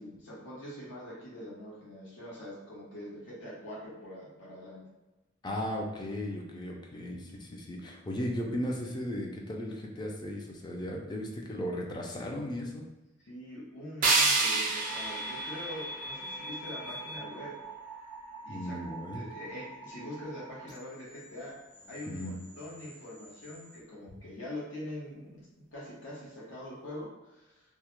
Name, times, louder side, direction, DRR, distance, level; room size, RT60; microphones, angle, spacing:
voice 1, 0.0-4.9 13.2-17.6 18.4-18.8 19.1-21.6 21.9-27.6, left 1 dB, 75° left, -7 dB, 0.8 m, -44 dB
voice 2, 5.4-12.9 18.5-19.2 22.1-22.3, left 1 dB, 20° left, 0 dB, 0.4 m, -36 dB
sound 1, 14.0-17.0, right 3 dB, 45° right, 0.4 m, -29 dB
sound 2, 14.4-23.8, right 1 dB, 40° left, 0.8 m, -44 dB
2.3 x 2.0 x 2.9 m, 1.0 s
head